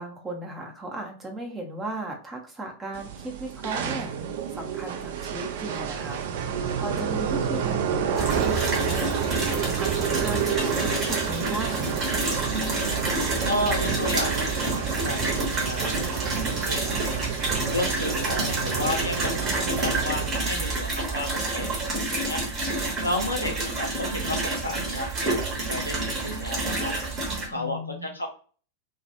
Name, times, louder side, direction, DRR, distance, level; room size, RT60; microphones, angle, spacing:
voice 1, 0.0-4.1 4.5-9.1 9.5-12.1 27.5-28.1, right 1 dB, 15° right, 1 dB, 0.6 m, -36 dB
sound 1, 2.9-20.3, right 7 dB, 55° right, 0.4 m, -30 dB
sound 2, 8.2-27.5, right 2 dB, 30° right, 0.9 m, -28 dB
voice 2, 13.4-17.3 17.7-22.4 23.0-26.9 27.5-28.3, left 1 dB, 80° left, 2 dB, 0.4 m, -32 dB
2.3 x 2.2 x 2.8 m, 0.40 s
figure-of-eight pair, 90°, 0 cm